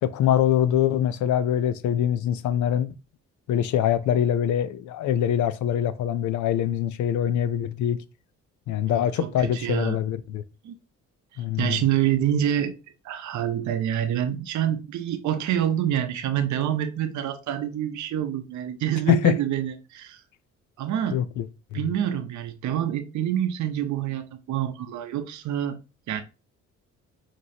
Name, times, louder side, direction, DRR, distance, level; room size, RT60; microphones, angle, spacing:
voice 1, 0.0-2.9 3.5-8.0 8.7-10.4 11.4-11.8 19.1-19.4 21.1-21.4 21.7-21.8, left 10 dB, 75° left, 0.5 m, -23 dB
voice 2, 8.9-10.0 10.6-10.7 11.3-12.7 13.0-20.2 20.8-21.2 21.7-25.8 26.1-26.2, right 10 dB, 70° right, 0.7 m, -27 dB
5.2 x 2.9 x 2.8 m
cardioid pair, 90°, 30 cm